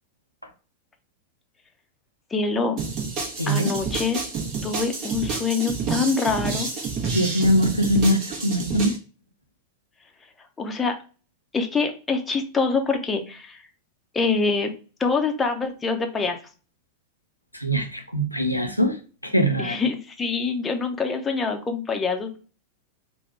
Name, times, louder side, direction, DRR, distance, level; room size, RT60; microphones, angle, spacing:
voice 1, 2.3-2.8 3.5-4.2 4.6-6.7 10.6-11.0 11.5-13.6 14.1-14.7 15.0-16.4 19.6-22.4, left 4 dB, 15° left, 4 dB, 0.7 m, -25 dB
sound 1, 2.8-9.0, right 4 dB, 35° right, 1.1 m, -29 dB
voice 2, 3.4-3.7 7.1-8.9 17.5-19.0 19.2-19.8, equal, 90° left, 3 dB, 0.5 m, -22 dB
3.6 x 2.2 x 4.3 m, 0.37 s
figure-of-eight pair, 90°, 0 cm